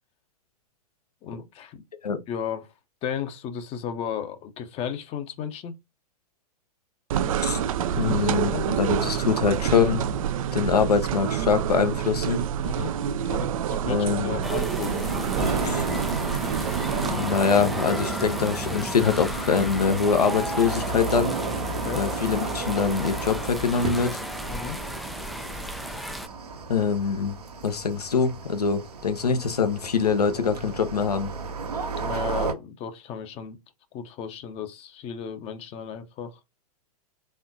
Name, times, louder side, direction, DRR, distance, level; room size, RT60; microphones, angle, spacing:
voice 1, 1.2-1.8 2.3-2.7 3.0-5.7 8.0-8.7 12.6-12.9 13.2-15.7 21.7-22.0 24.5-24.8 31.9-33.6 33.9-36.3, left 8 dB, 30° left, 0.7 m, -34 dB
sound 1, 7.1-17.1, right 9 dB, 60° right, 0.5 m, -27 dB
voice 2, 8.0-10.0 10.5-12.4 13.9-14.4 15.6-15.8 17.0-21.3 21.9-24.2 26.7-27.4 27.6-31.3, left 6 dB, 85° left, 1.0 m, -24 dB
sound 2, 14.4-26.3, equal, ahead, 0.3 m, -35 dB
sound 3, 15.3-32.5, right 3 dB, 85° right, 1.1 m, -32 dB
4.2 x 3.5 x 2.6 m
hypercardioid pair, 115°, 19 cm